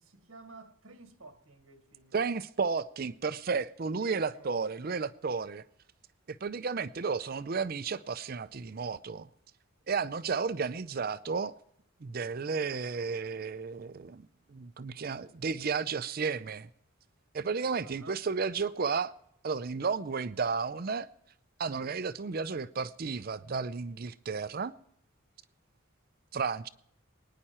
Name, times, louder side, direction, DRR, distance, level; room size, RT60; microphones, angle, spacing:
voice 1, 0.0-2.2 3.9-4.6 17.8-18.2, right 3 dB, 75° right, 1.5 m, -53 dB
voice 2, 2.1-5.6 6.3-9.3 9.9-11.5 12.0-16.7 17.3-19.1 19.4-21.1 21.6-24.7 26.3-26.7, right 5 dB, 45° right, 0.5 m, -33 dB
23.0 x 10.0 x 4.3 m
head